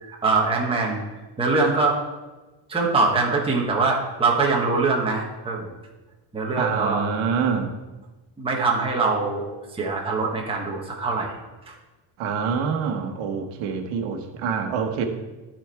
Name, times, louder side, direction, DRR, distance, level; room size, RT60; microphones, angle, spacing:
voice 1, 0.0-1.0 1.4-2.0 2.7-5.7 6.3-7.0 8.4-11.3, right 3 dB, 10° right, -2 dB, 1.2 m, -23 dB
voice 2, 6.6-7.7 12.2-15.1, right 6 dB, 90° right, 4 dB, 1.3 m, -26 dB
13.0 x 4.4 x 4.6 m, 1.1 s
cardioid pair, 160°, 47 cm